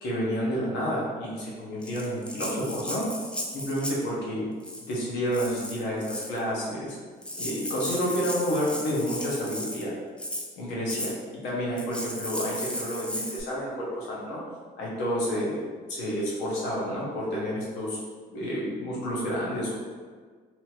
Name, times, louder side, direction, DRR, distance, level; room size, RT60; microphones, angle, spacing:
voice 1, 0.0-3.1 3.5-4.4 4.9-7.0 7.4-9.9 10.6-11.1 11.4-14.4 14.8-15.6 15.9-18.0 18.3-19.7, equal, 85° left, -5 dB, 1.0 m, -30 dB
Rattle (instrument), 1.8-4.1 4.6-5.0 5.3-6.4 6.9-7.0 7.2-9.8 10.2-10.5 10.9-11.1 11.8-13.4, left 1 dB, 5° left, 0.4 m, -35 dB
2.9 x 2.6 x 2.9 m, 1.5 s
cardioid pair, 95°, 17 cm